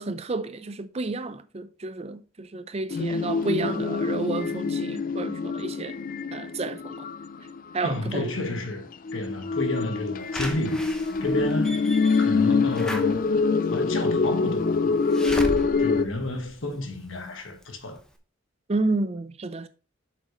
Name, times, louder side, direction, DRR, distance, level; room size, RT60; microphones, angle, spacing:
voice 1, 0.0-6.0 6.3-7.1 7.7-8.3 18.7-19.7, right 3 dB, 30° right, 0.5 m, -30 dB
sound 1, 2.9-8.1 8.9-16.0, left 4 dB, 40° left, 0.4 m, -25 dB
voice 2, 7.8-8.8 9.1-10.9 11.2-11.9 12.2-13.4 13.7-14.7 15.0-15.4 15.8-18.0, left 2 dB, 70° left, 1.5 m, -31 dB
Slam / Alarm, 10.3-17.1 17.6-17.7 18.0-18.1, equal, 5° left, 0.9 m, -37 dB
7.7 x 6.4 x 3.1 m
head